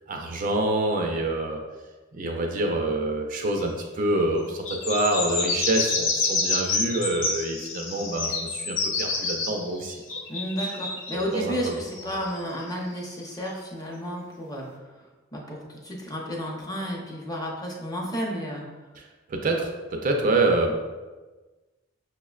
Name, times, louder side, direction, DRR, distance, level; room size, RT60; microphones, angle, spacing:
voice 1, 0.1-1.6 2.1-10.0 11.1-11.8 19.0-19.1 19.3-20.7, right 2 dB, 45° right, 2 dB, 0.4 m, -26 dB
sound 1, 4.7-11.3 11.9-13.4, left 3 dB, 80° left, 0.6 m, -28 dB
voice 2, 10.3-14.8 15.3-18.6, equal, 20° left, -3 dB, 0.6 m, -32 dB
5.7 x 2.0 x 2.3 m, 1.3 s
head